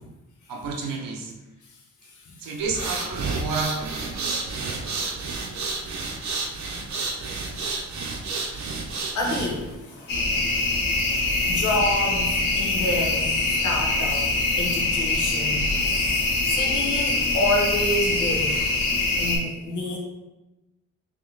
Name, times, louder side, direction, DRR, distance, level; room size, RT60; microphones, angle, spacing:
voice 1, 0.5-1.3 2.4-4.0 11.1-11.3, right 4 dB, 90° right, 1 dB, 0.8 m, -30 dB
sound 1, 2.6-9.7, right 3 dB, 60° right, 0.8 m, -30 dB
voice 2, 9.1-10.2 11.1-14.3 14.6-20.0, left 1 dB, 65° left, -2 dB, 1.0 m, -29 dB
sound 2, 10.1-19.4, left 2 dB, 85° left, 1.3 m, -24 dB
3.6 x 3.0 x 3.8 m, 1.1 s
cardioid pair, 70°, 33 cm